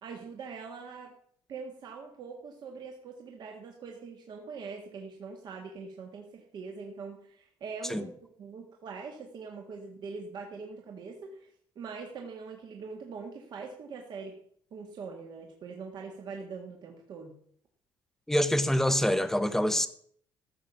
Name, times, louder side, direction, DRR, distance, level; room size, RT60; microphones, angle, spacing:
voice 1, 0.0-1.1 1.5-8.1 8.4-11.5 11.7-14.3 14.7-17.4, right 5 dB, 50° right, 1.7 m, -43 dB
voice 2, 18.3-19.9, equal, 5° left, 0.8 m, -25 dB
14.0 x 6.6 x 7.1 m
cardioid pair, 150°, 10 cm